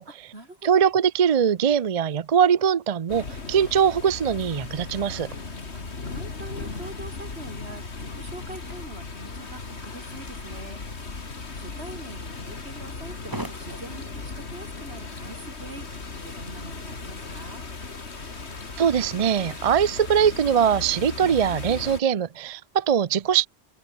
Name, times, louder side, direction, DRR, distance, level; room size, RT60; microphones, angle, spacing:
voice 1, 0.1-0.8 5.7-10.8 11.5-17.7, right 2 dB, 70° right, 5.6 m, -43 dB
voice 2, 0.6-5.3 18.8-23.5, right 8 dB, 45° right, 0.5 m, -22 dB
sound 1, 3.1-22.0, left 4 dB, 85° left, 2.6 m, -37 dB
sound 2, 5.8-16.2, right 1 dB, 20° right, 4.7 m, -47 dB
omnidirectional pair, 1.1 m